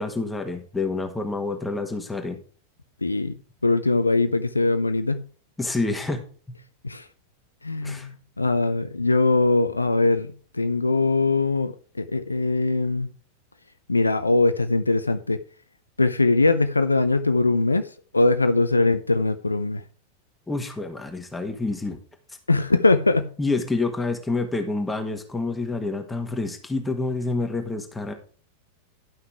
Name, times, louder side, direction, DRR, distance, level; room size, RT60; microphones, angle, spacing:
voice 1, 0.0-2.4 5.6-6.2 6.5-6.6 7.8-8.1 20.5-22.0 23.4-28.1, left 3 dB, 10° left, 1.5 m, -28 dB
voice 2, 3.0-3.4 3.6-5.2 6.8-7.0 7.6-8.1 8.4-13.1 13.9-15.4 16.0-17.8 18.1-19.8 22.5-23.3, left 3 dB, 80° left, 0.5 m, -21 dB
11.5 x 5.8 x 4.6 m
figure-of-eight pair, 90°, 0 cm